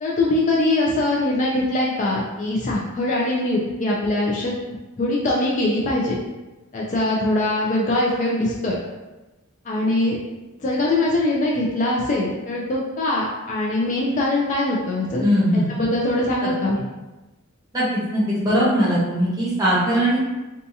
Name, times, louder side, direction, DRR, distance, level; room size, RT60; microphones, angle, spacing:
voice 1, 0.0-4.5 5.0-6.2 6.7-8.8 9.7-10.2 10.6-15.2 15.5-16.8, left 2 dB, 35° left, -4 dB, 0.3 m, -22 dB
voice 2, 15.2-15.7 17.7-17.8 18.1-20.2, equal, 15° right, -8 dB, 0.9 m, -19 dB
2.6 x 2.3 x 2.6 m, 1.1 s
head